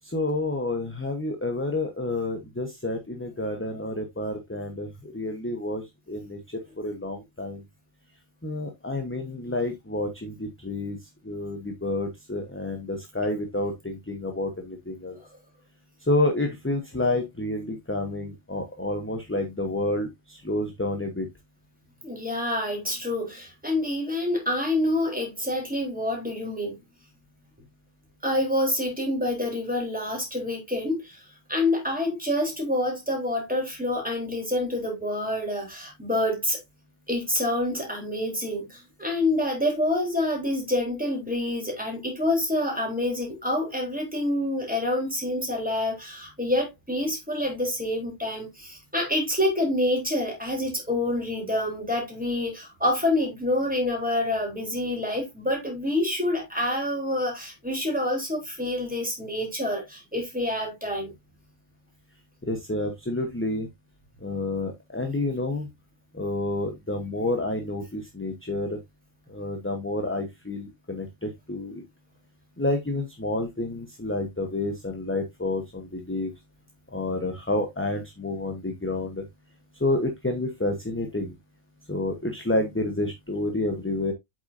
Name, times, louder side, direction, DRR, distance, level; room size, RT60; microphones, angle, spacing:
voice 1, 0.0-6.4 6.8-7.6 8.4-11.0 11.2-15.2 16.0-21.3 62.4-63.7 64.2-65.7 66.1-68.8 69.3-71.8 72.6-76.3 76.9-79.2 79.8-81.3 81.9-84.1, left 2 dB, 10° left, 1.0 m, -29 dB
voice 2, 22.0-26.8 28.2-31.2 31.5-36.6 37.1-61.1, left 1 dB, 5° right, 3.7 m, -27 dB
8.3 x 6.1 x 2.7 m
omnidirectional pair, 1.3 m